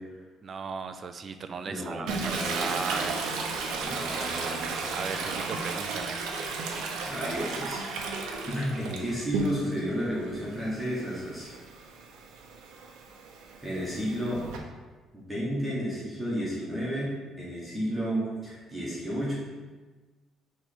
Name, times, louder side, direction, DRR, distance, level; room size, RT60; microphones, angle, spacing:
voice 1, 0.4-3.2 4.9-6.2, right 5 dB, 30° right, 9 dB, 0.3 m, -36 dB
voice 2, 1.6-2.9 3.8-4.7 7.1-7.9 8.3-11.5 13.6-14.4 15.1-19.4, equal, 5° right, -8 dB, 1.3 m, -32 dB
Toilet flush, 2.1-9.9 10.3-14.6, right 4 dB, 90° right, 0.8 m, -34 dB
6.2 x 3.2 x 4.9 m, 1.3 s
cardioid pair, 175°, 0 cm